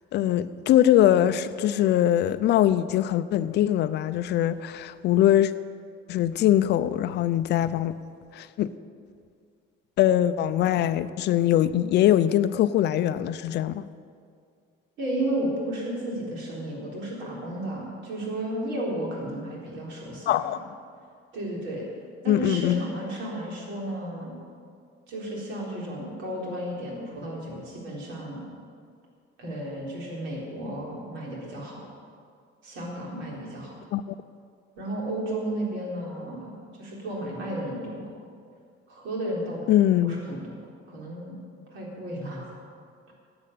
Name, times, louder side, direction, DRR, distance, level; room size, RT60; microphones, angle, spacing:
voice 1, 0.1-5.5 6.1-8.0 8.3-8.7 10.0-13.9 20.3-20.6 22.3-22.8 33.9-34.0 39.7-40.2, left 12 dB, 55° left, 13 dB, 0.5 m, -22 dB
voice 2, 15.0-20.5 21.3-21.8 22.2-24.3 25.1-28.4 29.4-31.8 32.6-33.8 34.8-38.1 38.9-39.6 40.0-40.4 40.9-41.3 41.7-42.6, right 1 dB, 70° right, -3 dB, 3.9 m, -33 dB
11.0 x 8.8 x 8.3 m, 2.2 s
cardioid pair, 155°, 20 cm